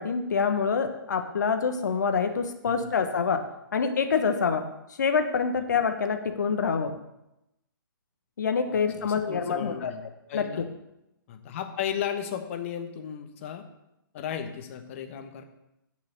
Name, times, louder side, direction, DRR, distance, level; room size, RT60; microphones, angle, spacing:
voice 1, 0.0-3.4 3.7-4.6 5.0-6.9 8.4-9.9 10.3-10.4, left 5 dB, 55° left, 7 dB, 1.4 m, -26 dB
voice 2, 8.7-10.0 10.3-10.7 11.3-13.7 14.1-15.4, left 9 dB, 35° left, 6 dB, 1.3 m, -35 dB
8.6 x 6.5 x 8.0 m, 0.88 s
figure-of-eight pair, 125°, 12 cm